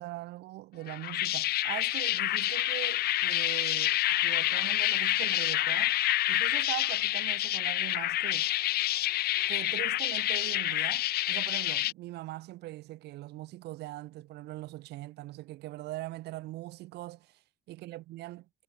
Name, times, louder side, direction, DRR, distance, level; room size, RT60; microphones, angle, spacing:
voice 1, 0.0-6.0 6.3-8.5 9.5-17.4 17.7-18.4, right 17 dB, 80° right, 3.2 m, -41 dB
sound 1, 0.9-11.9, left 14 dB, 70° left, 1.1 m, -28 dB
cardioid pair, 110°, 17 cm